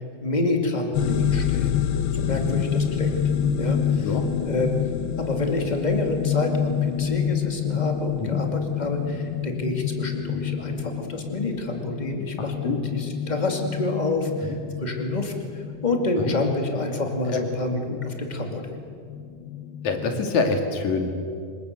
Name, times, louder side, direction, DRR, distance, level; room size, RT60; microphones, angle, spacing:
voice 1, 0.2-1.8 2.1-3.2 3.6-4.7 5.2-18.8, left 2 dB, 15° left, 3 dB, 1.6 m, -28 dB
sound 1, 0.9-20.3, left 8 dB, 70° left, 2.8 m, -28 dB
voice 2, 2.3-2.6 4.0-4.2 8.2-8.4 12.6-12.8 14.5-14.6 16.2-16.3 17.3-17.4 19.8-21.1, left 4 dB, 50° left, 5 dB, 3.4 m, -26 dB
27.0 x 21.0 x 8.1 m, 2.4 s
omnidirectional pair, 4.5 m